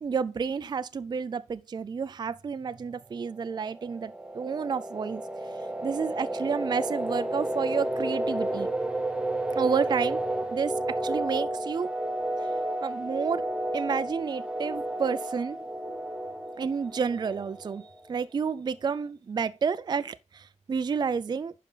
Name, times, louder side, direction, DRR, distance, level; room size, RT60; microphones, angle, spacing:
voice 1, 0.0-5.2 5.8-8.7 9.6-10.2 10.5-11.9 12.8-13.5 13.7-15.6 16.6-21.5, right 6 dB, 35° right, 0.4 m, -30 dB
sound 1, 3.4-18.0, right 1 dB, 10° right, 0.8 m, -32 dB
10.5 x 5.1 x 3.9 m
wide cardioid pair, 145°, 12 cm